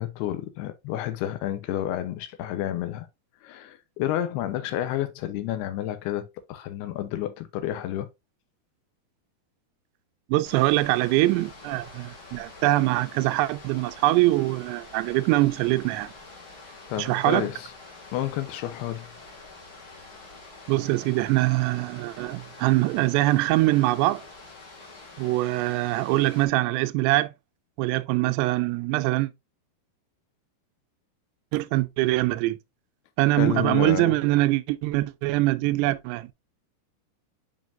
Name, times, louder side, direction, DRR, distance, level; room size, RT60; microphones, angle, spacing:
voice 1, 0.0-3.1 3.4-8.1 16.9-17.7 18.1-19.1 33.4-34.2, left 12 dB, 85° left, 2.7 m, -30 dB
voice 2, 10.3-16.1 17.0-17.5 20.7-24.2 25.2-27.3 27.8-29.3 31.5-32.6 33.2-36.3, right 18 dB, 90° right, 2.7 m, -23 dB
sound 1, 10.4-26.5, left 3 dB, 35° left, 2.7 m, -46 dB
7.4 x 5.1 x 2.6 m
omnidirectional pair, 4.7 m